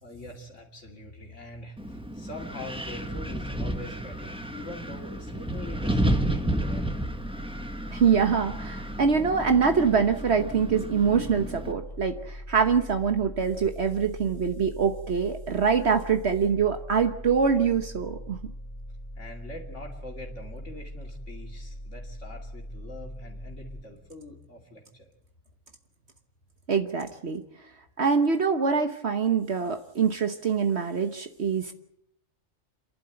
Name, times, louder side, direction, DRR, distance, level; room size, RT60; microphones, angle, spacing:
voice 1, 0.0-7.1 19.2-25.1, left 1 dB, 70° left, 1 dB, 2.8 m, -43 dB
Wind, 1.8-11.7, right 1 dB, 5° right, 1.2 m, -32 dB
sound 1, 6.3-23.8, equal, 20° left, 3.7 m, -41 dB
voice 2, 7.9-18.4 26.7-27.4 28.0-31.7, right 6 dB, 60° right, 7 dB, 1.4 m, -24 dB
27.5 x 11.5 x 8.9 m, 0.76 s
omnidirectional pair, 1.3 m